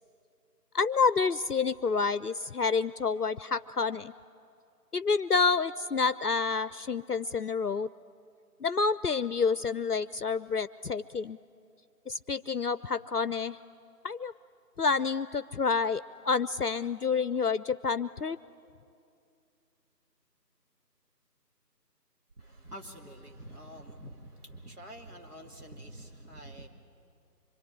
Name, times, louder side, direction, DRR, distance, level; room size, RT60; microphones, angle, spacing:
voice 1, 0.7-4.1 4.9-7.9 8.6-11.4 12.1-13.6 14.0-14.3 14.8-18.4, left 5 dB, 65° left, 16 dB, 0.6 m, -28 dB
voice 2, 22.4-26.7, right 1 dB, 65° right, 1 dB, 2.6 m, -47 dB
25.5 x 23.0 x 9.9 m, 2.5 s
figure-of-eight pair, 180°, 50 cm